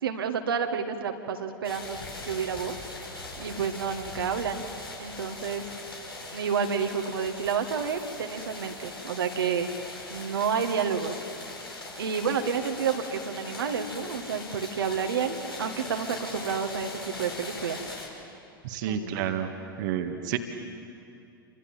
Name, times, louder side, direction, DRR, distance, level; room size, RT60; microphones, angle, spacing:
voice 1, 0.0-2.0 2.3-2.8 3.4-4.6 5.0-5.6 6.3-9.7 10.1-11.2 12.0-16.9 17.2-17.8 18.9-19.2, right 6 dB, 70° right, 4 dB, 2.0 m, -30 dB
sound 1, 1.6-18.1, left 2 dB, 90° left, 5.6 m, -41 dB
voice 2, 18.6-19.5 19.8-20.4, right 9 dB, 55° right, 5 dB, 1.9 m, -30 dB
29.5 x 26.0 x 7.5 m, 2.5 s
figure-of-eight pair, 95°, 12 cm